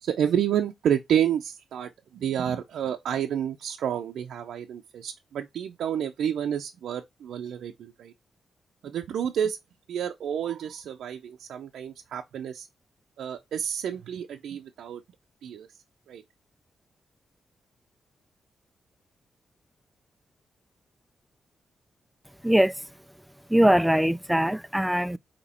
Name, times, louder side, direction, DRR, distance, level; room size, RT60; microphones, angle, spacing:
voice 1, 0.0-8.1 8.8-9.6 9.9-12.7 13.2-15.0 15.4-15.7 16.1-16.2, right 9 dB, 90° right, 0.5 m, -29 dB
voice 2, 22.4-22.7 23.5-25.2, right 1 dB, 5° right, 0.3 m, -21 dB
8.2 x 2.9 x 4.2 m
cardioid pair, 80°, 0 cm